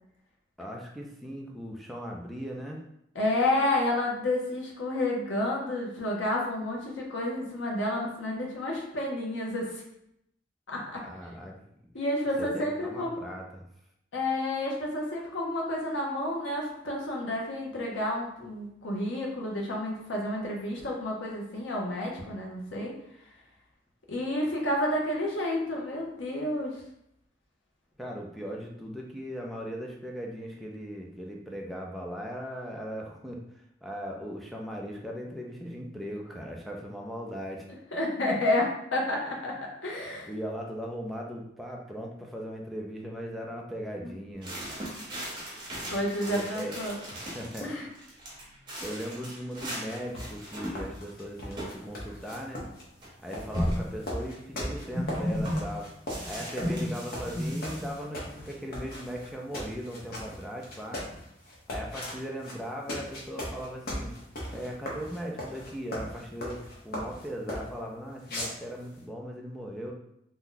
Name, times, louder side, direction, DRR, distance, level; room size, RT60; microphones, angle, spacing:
voice 1, 0.6-2.8 11.0-11.7 12.4-13.6 28.0-33.4 33.8-37.7 40.3-44.6 46.3-46.8 47.1-47.8 48.8-52.7 53.2-55.9 56.3-61.0 61.7-64.1 64.5-69.9, equal, ahead, -1 dB, 0.4 m, -38 dB
voice 2, 3.1-9.8 10.7-11.0 11.9-13.3 14.1-22.9 24.1-26.8 37.9-40.3 44.0-44.1 45.9-47.0 47.6-47.9, left 1 dB, 85° left, -2 dB, 0.8 m, -30 dB
sound 1, 44.4-47.6 47.9-49.9 50.2-51.1 51.6-51.8 52.1-52.2 53.0-53.1 53.5-54.0 54.9-55.6 56.1-57.9, equal, 25° right, 0.9 m, -34 dB
sound 2, 49.8-67.8 68.2-69.0, left 1 dB, 55° left, 0.9 m, -39 dB
2.7 x 2.2 x 3.8 m, 0.76 s
head